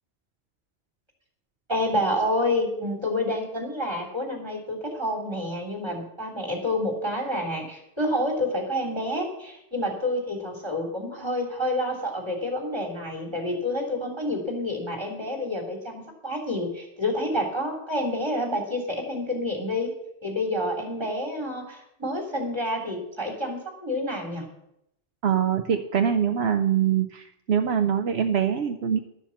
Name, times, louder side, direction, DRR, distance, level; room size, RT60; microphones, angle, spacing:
voice 1, 1.7-19.9 20.2-24.5, left 1 dB, 25° right, 0 dB, 3.2 m, -28 dB
voice 2, 25.2-29.0, right 8 dB, 70° right, 6 dB, 1.0 m, -24 dB
12.5 x 7.3 x 7.2 m, 0.79 s
omnidirectional pair, 1.1 m